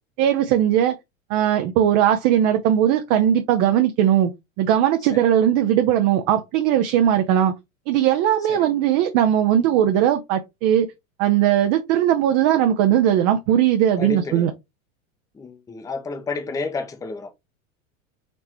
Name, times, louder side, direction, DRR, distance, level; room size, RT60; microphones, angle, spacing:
voice 1, 0.2-0.9 1.3-4.3 4.6-7.5 7.9-10.9 11.2-14.5, right 10 dB, 45° right, 0.6 m, -19 dB
voice 2, 14.0-14.5 15.3-17.3, left 3 dB, 10° left, 0.6 m, -31 dB
4.2 x 3.2 x 2.9 m
supercardioid pair, 120°, 42 cm